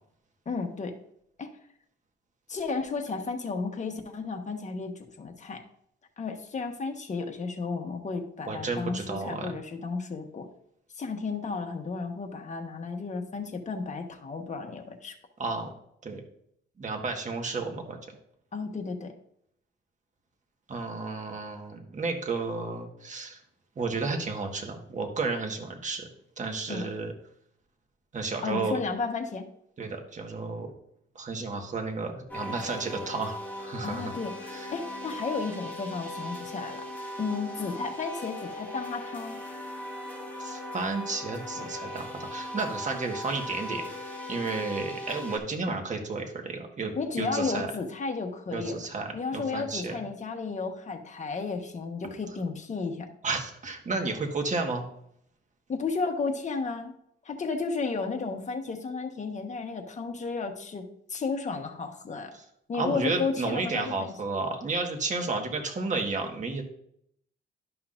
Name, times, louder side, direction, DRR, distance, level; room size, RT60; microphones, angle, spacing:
voice 1, 0.4-0.9 1.4-1.5 2.5-5.6 6.2-10.5 11.0-15.1 18.5-19.1 26.7-26.9 28.4-29.5 33.8-34.3 34.7-36.9 37.2-39.4 47.0-48.8 49.1-53.1 55.7-56.9 57.2-62.3 62.7-64.1, left 4 dB, 35° left, 4 dB, 1.3 m, -33 dB
voice 2, 8.5-9.5 15.4-15.7 16.0-16.2 16.8-18.0 20.7-23.4 23.8-26.1 26.4-27.1 28.1-28.8 29.8-30.7 31.1-34.1 34.5-34.7 40.4-43.8 44.3-47.7 48.5-49.1 49.3-50.0 53.2-54.8 62.3-62.4 62.7-66.6, right 3 dB, 40° right, 3 dB, 1.6 m, -32 dB
sound 1, 32.3-45.4, left 1 dB, 10° left, 2.2 m, -38 dB
12.0 x 5.7 x 2.6 m, 0.71 s
cardioid pair, 90°, 20 cm